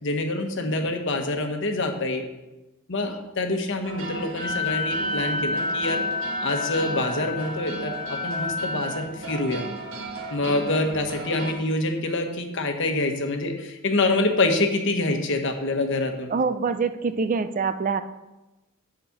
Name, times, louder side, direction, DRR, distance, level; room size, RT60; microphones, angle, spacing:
voice 1, 0.0-2.3 2.9-6.0 6.4-9.6 10.3-16.3, left 2 dB, 60° left, 5 dB, 1.2 m, -26 dB
sound 1, 3.8-11.5, right 2 dB, 65° right, 1.5 m, -36 dB
Wind instrument woodwind instrument, 4.3-9.0, left 3 dB, 20° right, 2.1 m, -29 dB
voice 2, 16.3-18.0, right 5 dB, 40° right, 11 dB, 0.4 m, -25 dB
8.8 x 5.1 x 7.2 m, 1.0 s
head